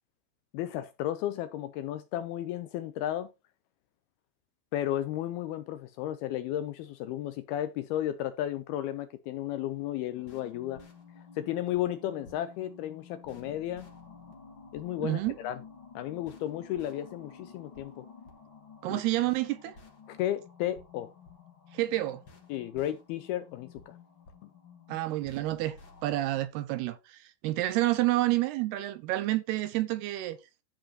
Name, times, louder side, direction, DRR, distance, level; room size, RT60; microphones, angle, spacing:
voice 1, 0.5-3.3 4.7-10.8 11.2-13.9 14.7-15.6 16.0-18.1 18.9-19.0 20.1-21.1 22.5-24.0 24.4-24.5, left 12 dB, 80° left, 2.3 m, -34 dB
sound 1, 10.1-26.5, left 5 dB, 35° left, 2.2 m, -52 dB
voice 2, 15.0-15.4 18.8-19.8 21.7-22.2 24.9-25.8 26.0-30.4, right 16 dB, 80° right, 2.5 m, -29 dB
13.5 x 5.0 x 4.1 m
omnidirectional pair, 5.0 m